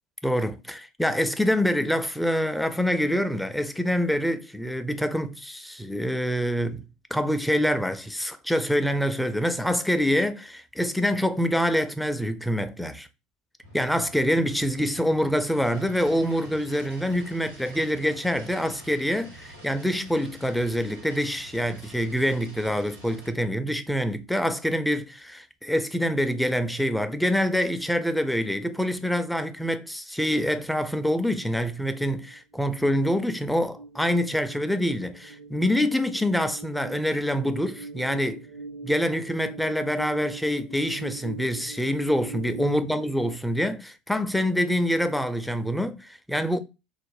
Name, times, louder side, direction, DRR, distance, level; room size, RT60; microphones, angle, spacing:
voice 1, 0.2-6.8 7.1-13.1 13.7-38.4 38.8-46.6, equal, 5° left, 0.3 m, -26 dB
sound 1, 13.6-23.3, right 1 dB, 85° right, 1.2 m, -47 dB
sound 2, 32.3-42.8, right 3 dB, 65° right, 0.4 m, -42 dB
2.4 x 2.0 x 3.2 m
figure-of-eight pair, 70°, 0 cm